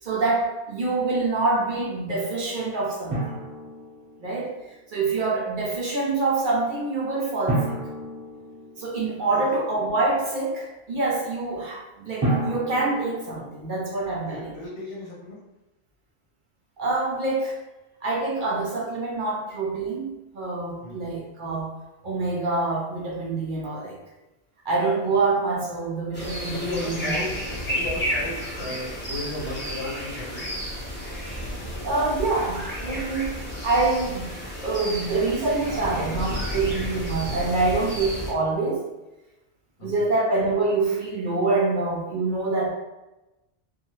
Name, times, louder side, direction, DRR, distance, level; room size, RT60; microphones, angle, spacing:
voice 1, 0.0-3.2 4.2-7.8 8.8-14.5 16.8-17.6 18.0-21.7 22.0-24.0 24.7-27.2 31.8-33.4 33.6-34.3 34.6-38.9 39.8-42.7, right 3 dB, 55° right, -3 dB, 0.6 m, -26 dB
Drum, 3.1-4.6 7.5-9.3 12.2-13.8, right 1 dB, 20° right, 0.7 m, -30 dB
voice 2, 14.2-15.4 20.8-21.1 26.5-27.3 27.7-30.5 39.8-40.1, left 2 dB, 65° left, -2 dB, 0.8 m, -35 dB
sound 1, 26.1-38.3, equal, 10° left, 0.8 m, -32 dB
2.7 x 2.2 x 3.0 m, 1.0 s
omnidirectional pair, 1.2 m